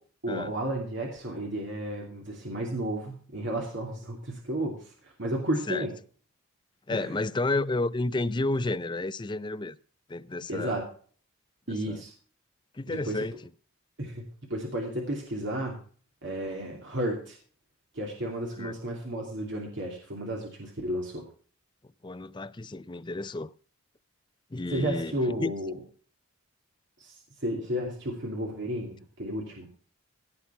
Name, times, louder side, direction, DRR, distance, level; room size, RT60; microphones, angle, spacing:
voice 1, 0.2-5.9 6.9-7.1 10.5-10.8 11.7-12.1 12.9-13.2 14.0-15.8 16.2-17.4 17.9-21.2 24.7-25.8 27.0-29.7, right 1 dB, 55° right, 2.8 m, -33 dB
voice 2, 6.9-9.8 10.1-10.7 11.7-12.0 12.7-13.4 18.6-18.7 22.0-23.5 24.5-25.5, left 2 dB, 20° left, 0.4 m, -31 dB
16.5 x 6.1 x 5.6 m
head